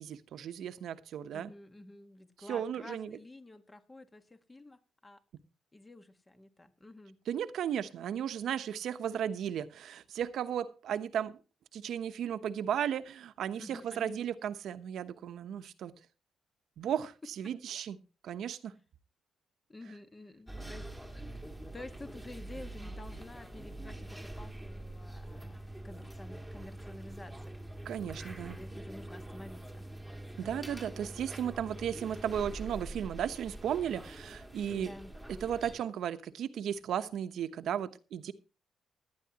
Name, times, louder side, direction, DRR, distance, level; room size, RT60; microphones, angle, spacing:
voice 1, 0.0-1.5 2.4-3.2 7.3-11.4 11.7-15.9 16.8-18.0 18.2-18.7 27.8-28.6 30.4-34.9 35.4-38.3, right 9 dB, 70° right, 11 dB, 1.0 m, -35 dB
voice 2, 1.3-5.2 5.7-7.2 13.6-14.3 19.7-20.9 21.2-21.5 21.7-27.6 28.4-29.9 34.7-35.1, left 2 dB, 20° left, 9 dB, 1.4 m, -50 dB
sound 1, 20.5-35.8, right 1 dB, ahead, 2.0 m, -45 dB
17.5 x 11.5 x 2.9 m, 0.33 s
cardioid pair, 90°, 0 cm